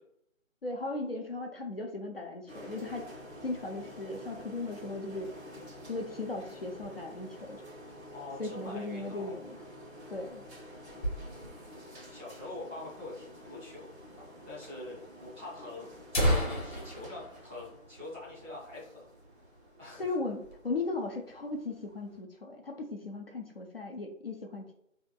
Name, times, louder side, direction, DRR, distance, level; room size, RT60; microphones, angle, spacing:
voice 1, 0.6-3.1 3.4-5.3 5.9-7.6 8.4-9.6 10.1-10.4 20.0-24.7, left 2 dB, 45° left, 2 dB, 0.6 m, -37 dB
sound 1, 2.5-22.2, equal, 55° right, 1.3 m, -50 dB
voice 2, 8.1-9.4 10.8-13.9 14.4-19.1 19.8-20.1, left 2 dB, 10° right, -12 dB, 0.8 m, -45 dB
sound 2, 9.9-11.8 12.1-12.2 12.4-12.5 13.2-13.3 14.2-14.3 14.6-14.7 15.5-15.6 15.9-18.5 18.8-19.0 19.4-19.6 20.0-20.6, equal, 30° left, 1.4 m, -33 dB
4.8 x 2.8 x 2.2 m, 0.76 s
figure-of-eight pair, 150°, 40 cm